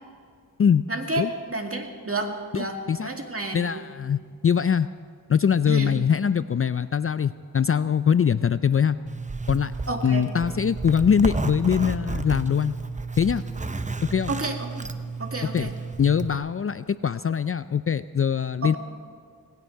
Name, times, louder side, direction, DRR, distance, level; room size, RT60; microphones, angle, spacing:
voice 1, 0.9-2.8 3.0-3.8 5.7-5.9 9.9-10.2 14.3-14.9 15.2-15.7 18.6-18.8, right 2 dB, 40° right, 3 dB, 2.1 m, -30 dB
voice 2, 2.5-3.1 3.5-4.9 5.3-9.0 9.5-9.7 10.0-12.8 13.2-13.4 14.1-14.3 15.5-15.7 16.0-18.8, left 7 dB, 40° left, 14 dB, 0.4 m, -22 dB
Zipper (clothing), 9.1-16.3, right 3 dB, 20° right, 0.8 m, -32 dB
19.0 x 16.5 x 4.6 m, 2.1 s
wide cardioid pair, 65°, 35 cm